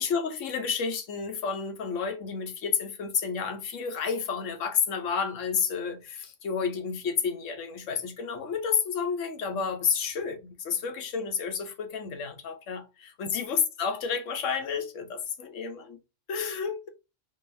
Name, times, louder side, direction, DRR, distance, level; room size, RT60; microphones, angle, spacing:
voice 1, 0.0-16.0 16.3-16.9, left 6 dB, 75° left, 1.2 m, -30 dB
3.9 x 3.4 x 2.6 m
omnidirectional pair, 1.3 m